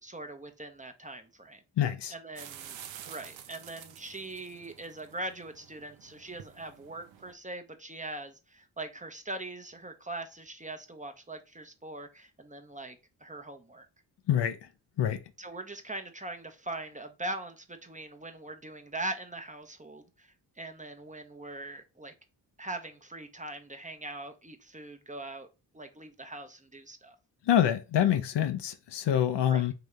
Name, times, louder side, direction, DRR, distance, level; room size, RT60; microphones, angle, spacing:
voice 1, 0.0-1.6 2.1-2.8 3.0-13.9 15.4-22.1 22.6-25.5 25.7-27.2 29.4-29.6, right 2 dB, 15° right, 0.8 m, -41 dB
voice 2, 1.8-2.1 14.3-14.6 15.0-15.2 27.5-29.7, left 10 dB, 65° left, 0.7 m, -26 dB
sound 1, 2.4-7.3, right 9 dB, 80° right, 0.6 m, -49 dB
3.6 x 2.9 x 3.3 m
supercardioid pair, 40°, 45 cm